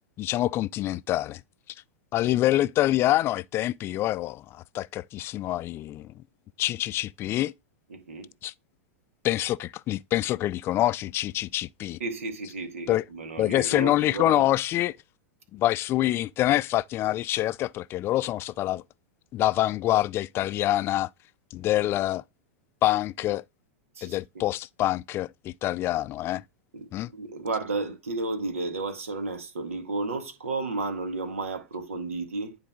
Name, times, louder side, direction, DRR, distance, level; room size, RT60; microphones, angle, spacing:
voice 1, 0.2-1.4 2.1-6.1 6.6-7.5 8.4-8.5 9.2-12.0 12.9-13.0 13.4-15.0 15.5-18.8 19.3-21.1 21.5-22.2 22.8-23.4 24.0-26.4 26.9-27.1, left 14 dB, 35° left, 0.3 m, -26 dB
voice 2, 7.9-8.3 12.0-14.5 24.0-24.4 26.7-32.6, right 3 dB, 90° right, 1.9 m, -33 dB
9.8 x 3.9 x 3.6 m
hypercardioid pair, 110°, 7 cm